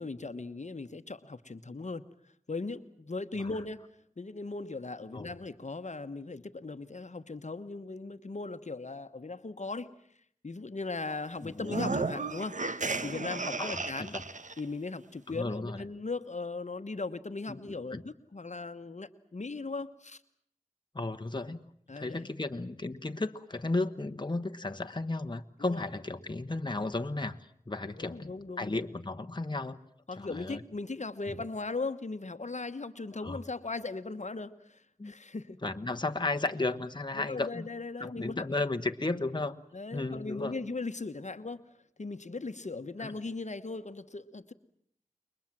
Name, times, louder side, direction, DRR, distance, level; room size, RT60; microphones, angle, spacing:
voice 1, 0.0-2.0 2.5-3.8 4.2-9.9 10.4-12.6 13.0-14.2 14.6-20.2 21.9-22.3 25.6-25.8 27.9-28.9 30.1-35.6 37.1-38.4 39.7-41.6 42.0-44.5, left 3 dB, 60° left, 9 dB, 1.2 m, -38 dB
voice 2, 11.4-11.8 13.6-13.8 14.1-14.2 15.3-15.8 17.5-17.6 17.9-18.0 20.9-21.7 21.9-27.4 27.7-28.3 28.6-29.8 30.2-30.6 31.3-31.4 33.2-33.4 35.0-35.1 35.6-37.7 38.0-39.6 39.9-40.5 43.0-43.1, left 2 dB, 35° left, 6 dB, 1.2 m, -34 dB
sound 1, 11.6-14.6, right 3 dB, 70° right, 1.2 m, -34 dB
28.5 x 23.0 x 7.5 m, 0.67 s
wide cardioid pair, 45°, 13 cm